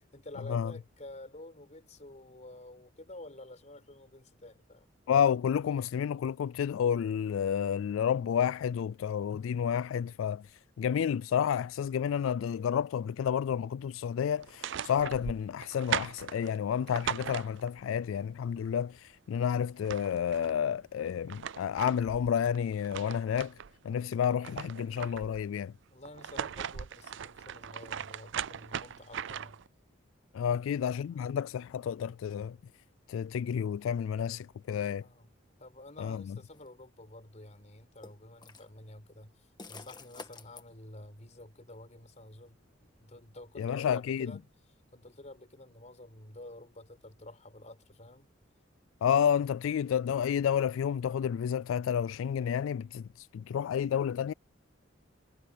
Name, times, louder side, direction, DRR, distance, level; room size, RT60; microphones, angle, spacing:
voice 1, 0.0-4.9 25.9-29.6 30.4-30.6 30.9-31.3 35.0-35.3 35.6-44.5 44.9-48.3, left 1 dB, 35° left, 4.6 m, -50 dB
voice 2, 5.1-10.4 10.8-23.5 23.8-25.7 30.3-32.6 33.1-35.0 36.0-36.4 43.6-44.3 49.0-54.3, left 8 dB, 80° left, 0.3 m, -30 dB
sound 1, 14.4-17.9 19.4-19.5 19.7-20.6 21.1-23.7 24.1-25.5 26.1-29.7, right 8 dB, 65° right, 0.5 m, -39 dB
sound 2, 36.5-36.7 38.0-38.7 39.6-40.6, left 3 dB, 20° left, 1.6 m, -48 dB
head